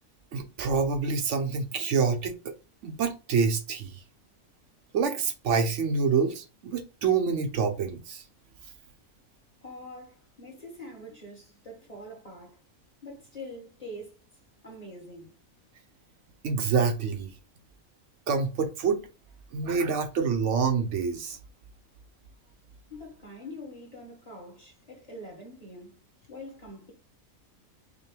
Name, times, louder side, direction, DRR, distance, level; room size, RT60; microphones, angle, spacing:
voice 1, 0.3-2.5 2.8-3.9 4.9-8.2 16.4-17.3 18.3-19.0 19.5-21.4, right 5 dB, 65° right, 0.9 m, -27 dB
voice 2, 9.6-12.6 13.0-14.2 14.6-15.3 22.9-26.0 26.3-26.9, left 1 dB, 30° left, 1.3 m, -44 dB
5.1 x 2.2 x 3.2 m
omnidirectional pair, 1.5 m